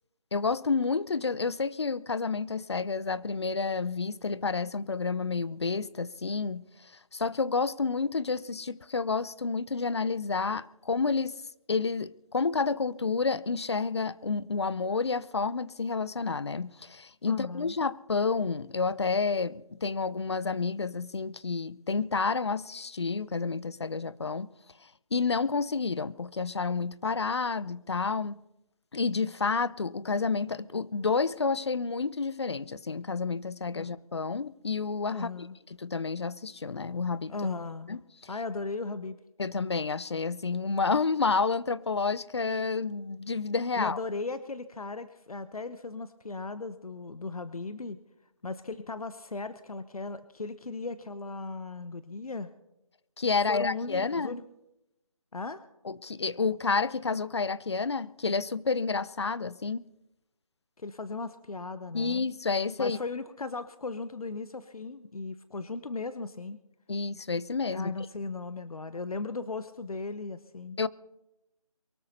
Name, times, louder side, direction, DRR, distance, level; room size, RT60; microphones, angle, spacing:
voice 1, 0.3-6.6 7.1-11.4 11.7-24.5 25.1-28.4 28.9-35.3 35.8-37.3 37.9-38.0 39.4-44.0 53.2-54.4 55.9-59.8 61.9-63.0 66.9-67.9 70.8-70.9, left 4 dB, 50° left, 0.5 m, -30 dB
voice 2, 17.3-17.7 33.7-33.9 35.1-35.6 37.3-37.9 38.3-39.2 43.7-48.0 48.4-52.5 53.5-54.4 55.3-55.6 60.8-62.3 62.8-66.6 67.7-70.8, left 3 dB, 80° left, 0.9 m, -37 dB
23.0 x 13.0 x 4.2 m
figure-of-eight pair, 170°, 18 cm